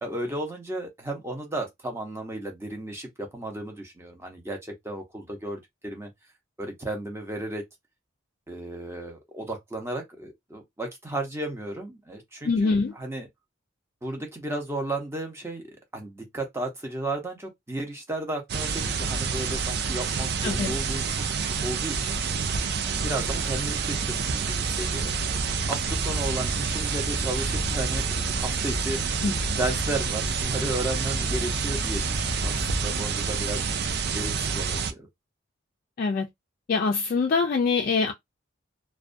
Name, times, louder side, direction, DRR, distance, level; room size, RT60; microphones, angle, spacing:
voice 1, 0.0-6.1 6.6-7.6 8.5-13.3 14.0-15.6 15.9-22.2 22.9-25.1 25.7-33.6 34.1-35.1, right 1 dB, 15° right, 0.7 m, -34 dB
voice 2, 12.4-12.9 20.4-20.7 29.2-29.3 36.0-36.3 36.7-38.1, left 4 dB, 45° left, 0.3 m, -24 dB
sound 1, 18.5-34.9, right 5 dB, 55° right, 0.4 m, -28 dB
sound 2, 24.8-32.9, left 1 dB, 15° left, 0.8 m, -36 dB
2.3 x 2.2 x 2.5 m
head